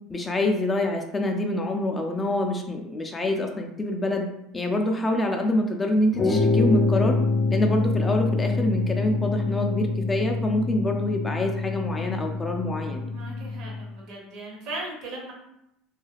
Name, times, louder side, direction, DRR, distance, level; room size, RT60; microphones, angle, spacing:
voice 1, 0.1-4.3 4.5-7.2 7.5-13.1, left 1 dB, 20° left, 3 dB, 0.4 m, -26 dB
sound 1, 6.1-13.9, left 3 dB, 50° left, 0.7 m, -25 dB
voice 2, 13.1-15.3, right 2 dB, 65° right, -2 dB, 1.1 m, -37 dB
2.4 x 2.3 x 3.2 m, 0.80 s
supercardioid pair, 100°, 0 cm